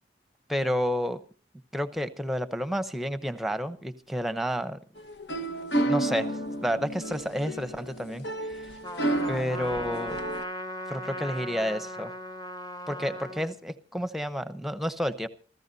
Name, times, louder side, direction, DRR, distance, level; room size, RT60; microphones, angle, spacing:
voice 1, 0.5-1.2 1.7-4.8 5.8-6.3 6.6-8.3 9.3-10.2 10.9-12.1 12.9-15.3, equal, ahead, 11 dB, 0.8 m, -30 dB
sound 1, 5.0-10.4, right 1 dB, 75° left, 1.4 m, -31 dB
Trumpet, 8.8-13.5, equal, 25° left, 1.1 m, -38 dB
27.0 x 14.5 x 2.7 m, 0.38 s
head